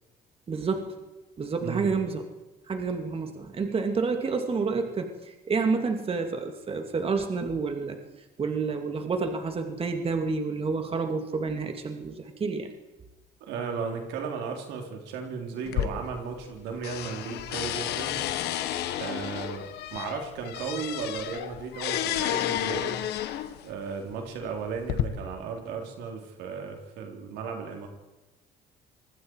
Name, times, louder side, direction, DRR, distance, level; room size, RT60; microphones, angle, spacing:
voice 1, 0.5-0.9 1.4-2.2 2.7-8.0 8.4-12.7, right 4 dB, 35° right, 5 dB, 2.7 m, -29 dB
voice 2, 13.4-18.2 19.0-23.0 23.6-27.9, right 5 dB, 90° right, 2 dB, 4.1 m, -35 dB
sound 1, 15.7-16.6 16.8-23.7 24.4-25.0, left 12 dB, 80° left, 1.7 m, -31 dB
26.5 x 20.5 x 4.9 m, 1.1 s
cardioid pair, 110°, 17 cm